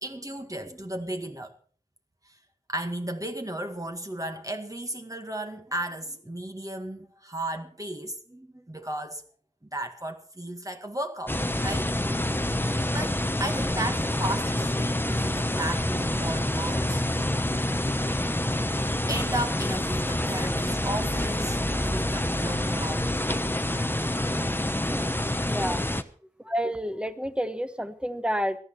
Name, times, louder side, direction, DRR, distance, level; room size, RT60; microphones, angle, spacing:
voice 1, 0.0-1.5 2.3-2.4 2.7-9.2 9.7-11.9 12.2-17.0 17.9-18.3 19.1-24.0, right 1 dB, 25° right, 1.9 m, -35 dB
sound 1, 11.3-26.0, left 1 dB, 15° left, 1.0 m, -27 dB
voice 2, 25.4-25.8 26.5-28.6, equal, 5° right, 1.3 m, -29 dB
17.5 x 12.5 x 4.5 m
wide cardioid pair, 45°, 14 cm